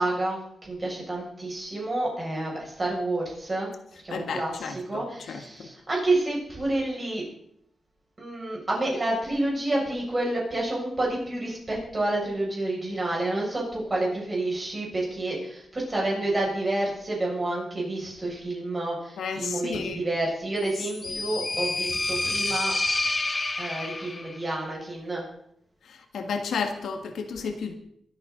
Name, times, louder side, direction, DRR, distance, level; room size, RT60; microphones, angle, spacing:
voice 1, 0.0-3.7 4.0-7.2 8.2-22.7 23.6-25.2, right 2 dB, 25° right, 6.3 m, -29 dB
voice 2, 4.1-5.7 19.2-20.0 21.0-21.1 25.8-27.7, left 5 dB, 85° left, 1.7 m, -32 dB
sound 1, 20.6-24.4, left 2 dB, 25° left, 1.0 m, -29 dB
23.5 x 9.3 x 3.9 m
wide cardioid pair, 120°, 0 cm